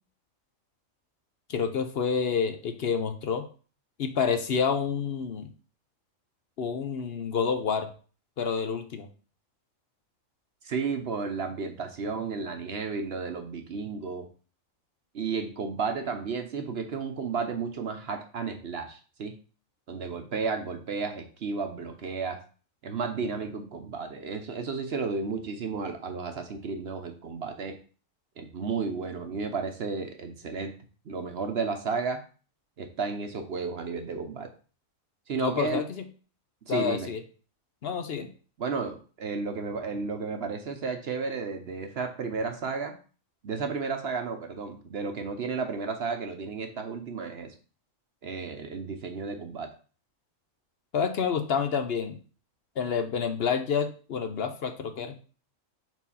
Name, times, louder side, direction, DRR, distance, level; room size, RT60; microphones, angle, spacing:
voice 1, 1.5-3.4 4.0-5.5 6.6-7.9 8.4-9.1 35.4-36.1 36.7-37.2 37.8-38.3 50.9-52.2 52.8-55.2, left 6 dB, 55° left, 7 dB, 0.8 m, -28 dB
voice 2, 10.6-14.3 15.1-19.4 19.9-22.4 22.8-27.8 28.4-30.7 31.1-32.2 32.8-34.5 35.3-35.8 36.7-37.1 38.6-42.9 43.4-47.5 48.2-49.7, right 5 dB, 55° right, 6 dB, 0.9 m, -33 dB
4.6 x 3.8 x 5.5 m, 0.38 s
omnidirectional pair, 1.4 m